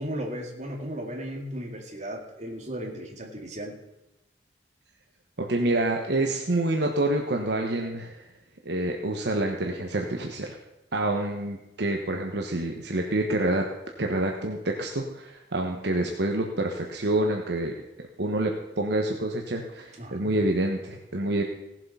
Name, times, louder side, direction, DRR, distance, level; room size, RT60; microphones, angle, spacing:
voice 1, 0.0-3.8 20.0-20.4, equal, 40° right, 1 dB, 2.3 m, -35 dB
voice 2, 5.4-8.2 8.6-10.6 10.9-13.7 14.0-17.7 18.2-21.4, right 1 dB, 70° right, 2 dB, 1.2 m, -27 dB
17.5 x 7.7 x 5.5 m, 0.93 s
head